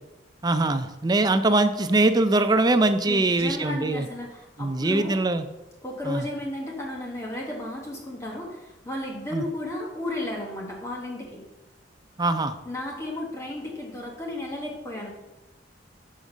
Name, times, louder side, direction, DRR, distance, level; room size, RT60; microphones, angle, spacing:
voice 1, 0.4-4.1 4.6-5.4 6.1-6.2 9.3-9.4 12.2-12.6, right 2 dB, 20° right, 10 dB, 0.4 m, -22 dB
voice 2, 3.1-5.2 5.8-11.4 12.6-15.1, left 1 dB, 15° left, -3 dB, 1.3 m, -34 dB
6.2 x 5.2 x 6.1 m, 1.0 s
head